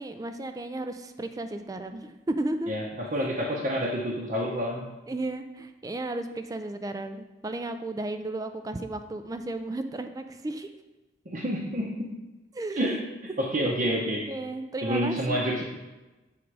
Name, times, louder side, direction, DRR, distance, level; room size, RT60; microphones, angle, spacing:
voice 1, 0.0-2.7 5.1-10.7 12.5-12.8 14.1-15.6, right 2 dB, 20° right, 8 dB, 0.3 m, -34 dB
voice 2, 2.7-4.8 11.3-12.2 12.8-13.0 13.4-14.3 14.8-15.6, equal, 45° right, -4 dB, 0.8 m, -28 dB
7.4 x 3.7 x 4.6 m, 1.1 s
head